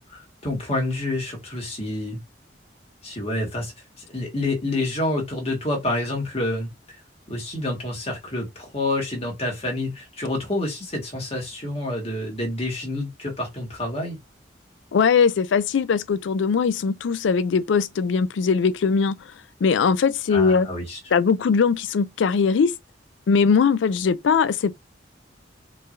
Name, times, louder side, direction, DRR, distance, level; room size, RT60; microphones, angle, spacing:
voice 1, 0.0-2.2 3.0-3.7 4.0-7.0 7.3-14.2 20.3-21.0, left 1 dB, 35° left, 1.6 m, -28 dB
voice 2, 14.9-19.2 19.6-20.7 21.1-22.7 23.3-24.7, left 5 dB, 90° left, 0.4 m, -20 dB
4.4 x 3.2 x 2.5 m
head